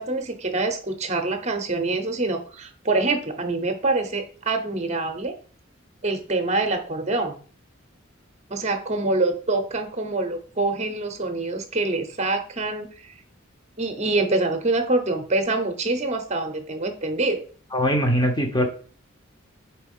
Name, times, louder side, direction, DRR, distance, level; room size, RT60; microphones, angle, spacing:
voice 1, 0.0-5.3 6.0-7.4 8.5-12.9 13.8-17.4, right 2 dB, 35° right, 7 dB, 0.9 m, -25 dB
voice 2, 17.7-18.6, equal, 20° left, 3 dB, 1.1 m, -21 dB
4.5 x 4.1 x 5.5 m, 0.42 s
head